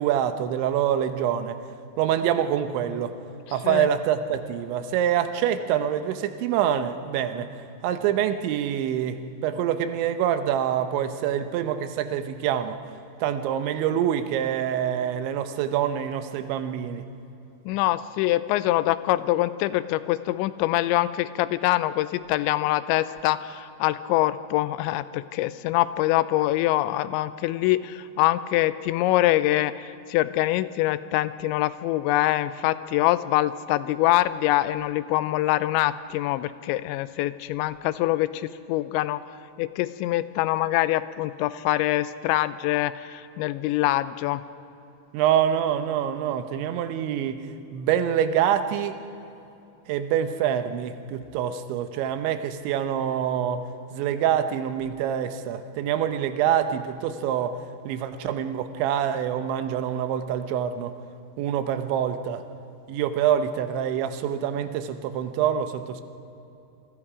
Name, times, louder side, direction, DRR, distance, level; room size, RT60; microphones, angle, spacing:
voice 1, 0.0-1.6 2.0-3.1 3.5-7.5 7.8-12.8 13.2-17.0 45.1-47.5 47.7-49.0 49.9-53.6 53.9-57.6 57.9-60.9 61.4-62.4 62.9-66.0, right 9 dB, 90° right, 9 dB, 3.3 m, -25 dB
voice 2, 17.7-39.2 39.6-44.4, left 15 dB, 90° left, 14 dB, 3.0 m, -24 dB
27.0 x 24.0 x 5.0 m, 2.8 s
omnidirectional pair, 5.1 m